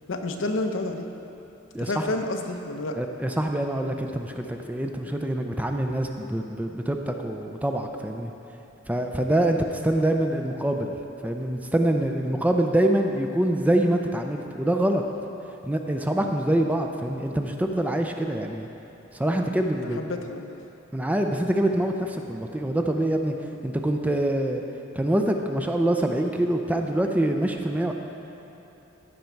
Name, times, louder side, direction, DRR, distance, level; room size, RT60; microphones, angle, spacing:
voice 1, 0.1-1.0 1.8-3.0 19.8-20.6, left 2 dB, 70° left, 5 dB, 0.7 m, -30 dB
voice 2, 1.7-2.1 3.0-8.3 8.9-11.0 11.2-15.0 15.6-18.7 19.1-20.1 20.9-23.3 23.6-24.6 24.9-27.9, right 1 dB, 10° right, 4 dB, 0.4 m, -25 dB
15.0 x 5.2 x 4.5 m, 3.0 s
head